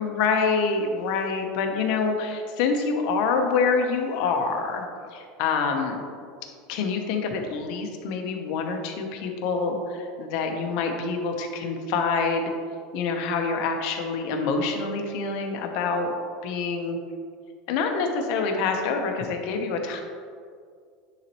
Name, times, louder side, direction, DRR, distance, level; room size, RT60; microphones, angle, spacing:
voice 1, 0.0-6.0 6.7-12.5 12.9-16.1 16.4-17.0 17.7-20.0, left 4 dB, 60° left, 3 dB, 0.9 m, -26 dB
9.8 x 4.1 x 3.1 m, 2.2 s
supercardioid pair, 150°, 0 cm